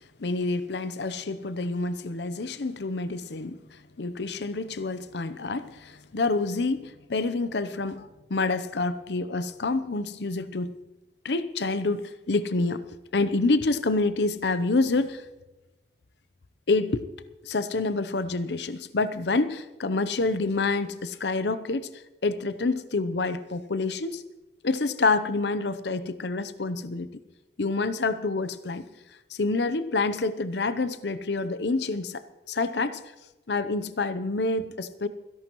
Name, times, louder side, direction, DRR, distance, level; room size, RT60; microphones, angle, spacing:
voice 1, 0.2-3.6 4.0-10.7 11.2-12.9 13.1-15.2 16.7-17.0 17.4-21.9 22.2-24.2 24.6-27.1 27.6-28.8 29.3-32.2 32.5-33.0 33.5-35.1, left 3 dB, 75° left, 14 dB, 0.7 m, -27 dB
28.0 x 11.5 x 3.1 m, 1.1 s
head